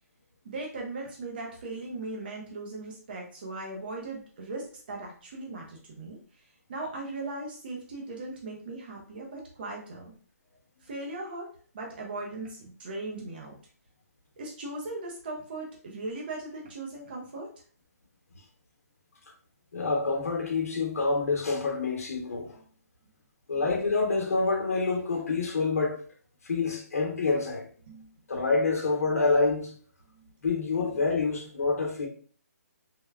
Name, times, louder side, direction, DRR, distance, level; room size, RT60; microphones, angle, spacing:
voice 1, 0.4-6.2 6.7-10.1 10.8-11.5 11.7-13.5 14.4-17.5 27.9-28.1 30.2-30.3, right 2 dB, 35° right, 0.6 m, -38 dB
voice 2, 19.7-22.6 23.5-26.0 26.4-27.7 28.3-29.7 30.4-32.1, left 3 dB, 60° left, 0.9 m, -27 dB
3.3 x 2.1 x 2.3 m
hypercardioid pair, 170°, 9 cm